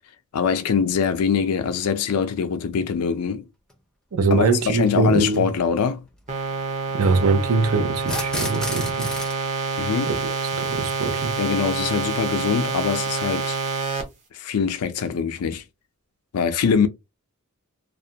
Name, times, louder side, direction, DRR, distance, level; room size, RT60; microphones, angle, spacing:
voice 1, 0.3-3.5 4.3-6.1 9.8-10.1 11.4-13.6 14.3-15.6 16.3-16.9, left 6 dB, 85° left, 0.4 m, -23 dB
sound 1, 3.7-3.8 5.2-5.4 8.0-9.4, left 1 dB, 5° left, 0.5 m, -31 dB
voice 2, 4.1-5.5 6.9-9.1 10.1-10.3 10.6-11.4, right 4 dB, 75° right, 0.5 m, -22 dB
sound 2, 6.3-14.0, right 4 dB, 35° right, 0.6 m, -27 dB
2.3 x 2.1 x 2.7 m
head